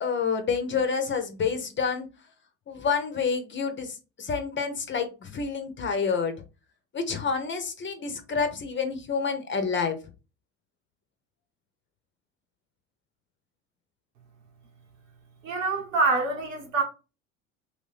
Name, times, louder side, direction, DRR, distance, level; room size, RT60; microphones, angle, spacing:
voice 1, 0.0-2.1 2.7-6.3 6.9-10.0, left 5 dB, 30° left, 1.0 m, -28 dB
voice 2, 15.4-16.8, right 3 dB, 85° right, 1.4 m, -25 dB
3.2 x 2.7 x 3.4 m
hypercardioid pair, 75°, 38 cm